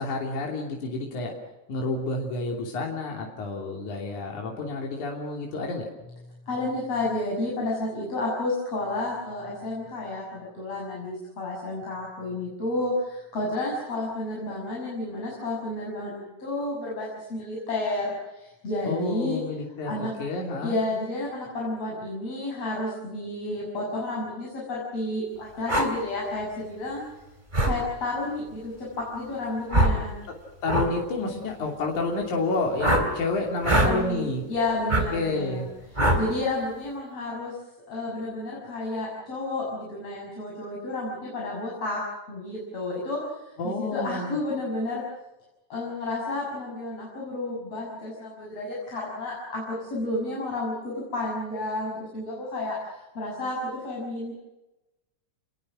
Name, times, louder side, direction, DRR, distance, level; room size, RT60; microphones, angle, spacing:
voice 1, 0.0-1.3 1.7-5.9 18.9-20.8 30.6-34.4 35.1-35.7 43.6-44.4, left 2 dB, 75° left, 0 dB, 4.5 m, -29 dB
voice 2, 6.5-19.4 19.8-20.1 20.6-27.0 27.6-28.9 29.1-30.2 33.7-35.7 35.9-37.5 37.9-42.0 42.3-45.0 45.7-54.3, left 2 dB, 55° left, -4 dB, 7.7 m, -31 dB
sound 1, 25.7-25.9 27.5-27.8 29.7-30.0 30.7-30.9 32.8-33.1 33.6-33.9 34.9-35.1 36.0-36.2, right 1 dB, 15° right, 3.0 m, -21 dB
29.0 x 21.5 x 6.3 m, 1.0 s
omnidirectional pair, 3.5 m